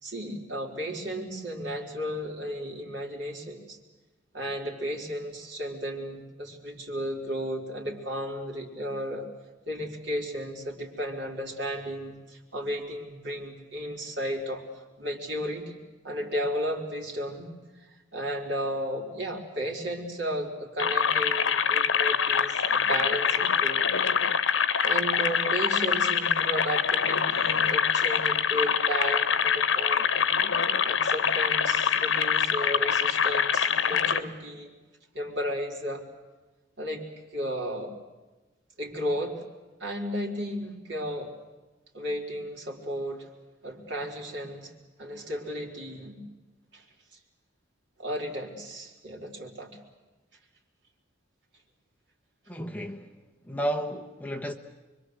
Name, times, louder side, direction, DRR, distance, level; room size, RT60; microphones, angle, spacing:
voice 1, 0.0-3.8 4.3-9.3 9.7-15.8 16.0-17.5 18.1-23.9 24.8-30.1 30.8-34.7 35.1-36.0 36.8-37.1 37.3-37.9 38.8-39.4 39.8-41.3 41.9-43.3 43.6-44.7 45.0-46.2 46.7-46.8 48.0-49.7, equal, 65° right, 4.7 m, -34 dB
sound 1, 20.8-34.2, left 7 dB, 80° left, 1.1 m, -25 dB
voice 2, 52.5-53.1 53.5-54.5, equal, 10° left, 1.2 m, -32 dB
26.0 x 24.0 x 8.1 m
head